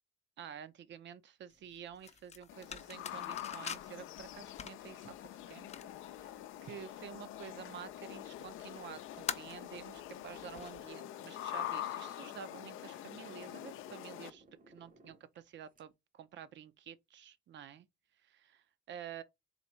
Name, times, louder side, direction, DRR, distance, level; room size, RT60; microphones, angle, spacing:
voice 1, 0.4-17.9 18.2-19.2, right 9 dB, 65° right, 0.7 m, -50 dB
sound 1, 1.5-10.9, left 7 dB, 35° left, 0.5 m, -47 dB
sound 2, 2.5-14.3, left 12 dB, 90° left, 0.5 m, -45 dB
sound 3, 6.4-15.8, right 1 dB, 45° right, 0.9 m, -63 dB
4.1 x 3.4 x 3.1 m
cardioid pair, 90°, 20 cm